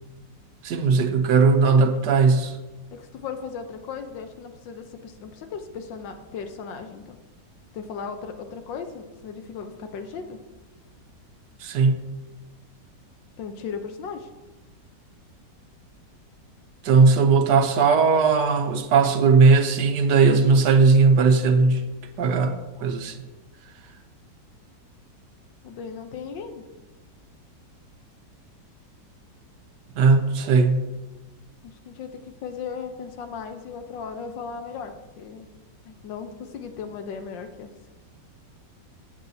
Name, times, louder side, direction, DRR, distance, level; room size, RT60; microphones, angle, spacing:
voice 1, 0.6-2.6 11.6-12.0 16.8-21.8 22.2-23.2 30.0-30.8, right 4 dB, 70° right, 6 dB, 1.3 m, -18 dB
voice 2, 2.9-7.2 7.7-10.4 13.4-14.3 25.6-26.6 31.6-35.5 35.8-37.7, left 6 dB, 85° left, 7 dB, 1.6 m, -36 dB
14.5 x 8.0 x 2.8 m, 1.1 s
omnidirectional pair, 1.9 m